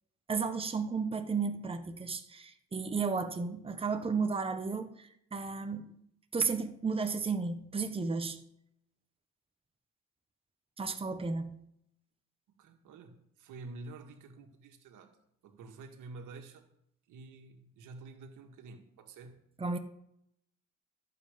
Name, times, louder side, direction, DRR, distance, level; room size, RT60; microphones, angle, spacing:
voice 1, 0.3-5.9 6.3-8.4 10.8-11.6 19.6-19.8, right 4 dB, 20° right, 1.0 m, -33 dB
voice 2, 12.5-15.2 15.4-16.7 17.1-19.4, right 3 dB, 85° right, 1.9 m, -49 dB
13.5 x 7.7 x 5.1 m
cardioid pair, 90°, 30 cm